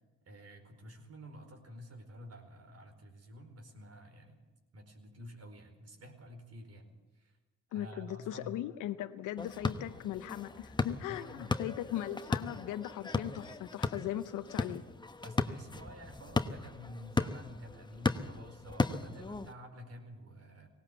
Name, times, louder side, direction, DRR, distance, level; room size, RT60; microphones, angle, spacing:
voice 1, 0.2-4.4 4.7-7.4 7.7-8.6 11.1-11.6 15.2-20.7, equal, 55° right, 4 dB, 4.8 m, -50 dB
voice 2, 7.7-14.8, left 12 dB, 90° left, 10 dB, 0.8 m, -39 dB
sound 1, 9.4-19.5, left 3 dB, 15° left, 1.0 m, -36 dB
18.5 x 18.5 x 8.1 m, 1.2 s
cardioid pair, 90°, 30 cm